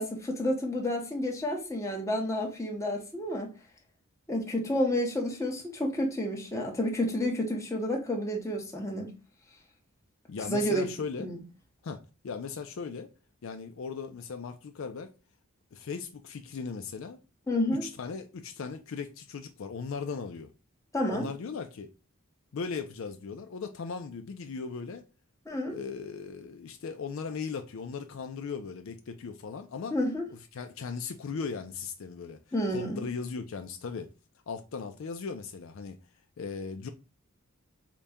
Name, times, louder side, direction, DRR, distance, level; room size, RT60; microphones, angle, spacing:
voice 1, 0.0-3.5 4.3-9.1 10.5-10.9 11.2-11.4 17.5-17.8 20.9-21.3 25.5-25.8 29.9-30.3 32.5-33.0, left 1 dB, 15° left, 0.8 m, -30 dB
voice 2, 10.3-11.3 11.8-13.1 13.4-15.1 15.7-17.2 17.7-20.5 21.1-21.9 22.5-25.1 25.7-29.9 30.3-32.4 32.7-34.1 34.5-36.0 36.4-36.9, left 5 dB, 60° left, 0.4 m, -38 dB
4.0 x 2.2 x 3.4 m
head